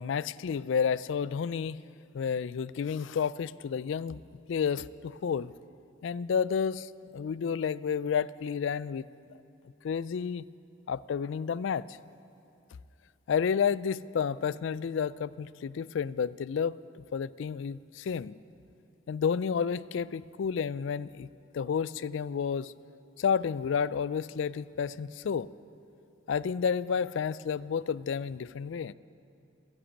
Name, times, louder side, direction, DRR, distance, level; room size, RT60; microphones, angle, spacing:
voice 1, 0.0-1.8 2.1-4.2 4.5-5.5 6.0-9.0 9.8-10.5 10.9-12.0 13.3-18.3 19.1-21.3 21.5-22.7 23.2-25.5 26.3-28.9, left 6 dB, 75° left, 18 dB, 0.3 m, -31 dB
15.5 x 10.5 x 8.6 m, 2.7 s
head